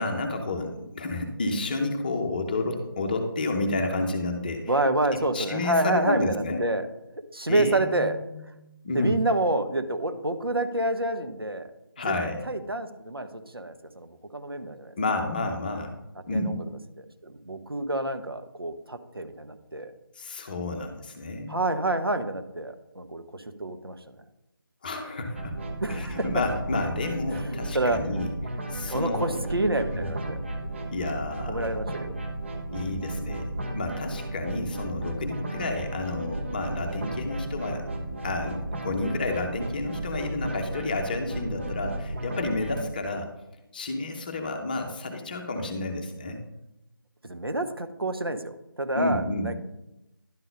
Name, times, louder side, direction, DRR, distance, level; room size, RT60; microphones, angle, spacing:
voice 1, 0.0-4.7 5.1-6.7 7.5-8.4 8.8-9.2 12.0-12.5 15.0-16.0 16.3-16.6 20.2-21.6 24.8-25.6 25.9-28.3 28.7-29.3 29.9-30.1 30.9-31.9 32.7-33.5 33.7-37.8 38.2-43.3 43.7-46.4 49.0-49.5, left 2 dB, 25° left, 5 dB, 0.8 m, -30 dB
voice 2, 4.7-6.9 7.3-8.2 8.9-11.7 12.0-12.1 12.4-15.0 16.3-16.6 17.0-19.9 21.5-24.2 25.8-26.3 27.3-28.0 28.9-30.4 31.5-32.2 47.2-49.6, right 2 dB, 80° right, 8 dB, 1.1 m, -28 dB
sound 1, 25.4-42.8, right 1 dB, 30° right, 0.9 m, -34 dB
11.0 x 3.9 x 5.1 m, 0.91 s
figure-of-eight pair, 160°, 12 cm